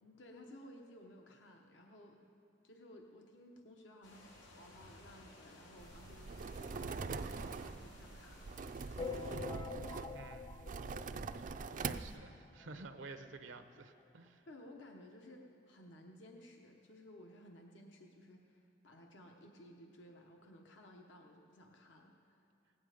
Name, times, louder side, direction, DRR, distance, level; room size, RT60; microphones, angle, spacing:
voice 1, 0.0-2.2 2.6-9.0 14.5-22.4, left 1 dB, 70° left, 1 dB, 1.0 m, -57 dB
sound 1, 4.0-9.4, left 1 dB, 90° left, 2.3 m, -58 dB
sound 2, 5.8-12.2, right 4 dB, 45° right, 0.4 m, -43 dB
sound 3, 9.0-11.8 12.3-12.4 12.6-12.7 13.0-13.1 14.0-14.1 14.6-14.7, left 5 dB, 20° left, 0.3 m, -46 dB
voice 2, 10.1-10.7 11.3-11.5 11.8-14.4, right 3 dB, 75° right, 9 dB, 0.7 m, -52 dB
17.5 x 9.7 x 5.0 m, 2.8 s
head